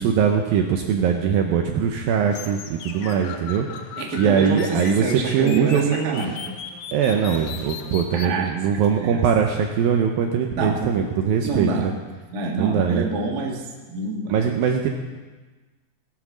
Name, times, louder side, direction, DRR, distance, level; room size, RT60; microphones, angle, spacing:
voice 1, 0.0-3.7 4.2-6.2 6.9-11.9 12.6-13.0 14.3-14.9, right 7 dB, 75° right, 3 dB, 2.3 m, -21 dB
sound 1, 2.3-8.3, left 6 dB, 80° left, 1.8 m, -37 dB
voice 2, 4.0-6.6 8.1-8.6 8.9-9.2 10.5-11.1 11.4-11.9 12.3-14.5, right 3 dB, 45° right, -1 dB, 1.2 m, -27 dB
19.0 x 8.3 x 6.1 m, 1.3 s
omnidirectional pair, 4.9 m